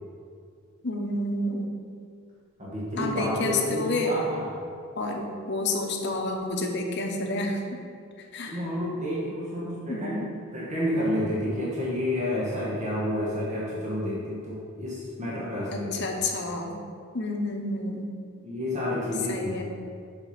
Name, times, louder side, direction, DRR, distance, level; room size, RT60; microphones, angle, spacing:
voice 1, 0.8-1.7 3.0-4.1 5.0-7.8 8.3-8.6 9.9-10.3 15.7-16.8 17.1-18.1 19.3-19.6, left 2 dB, 50° left, 2 dB, 0.9 m, -29 dB
voice 2, 2.6-4.5 8.5-10.2 10.5-16.1 18.4-19.5, left 1 dB, 30° right, -7 dB, 1.2 m, -30 dB
5.7 x 5.2 x 5.8 m, 2.3 s
head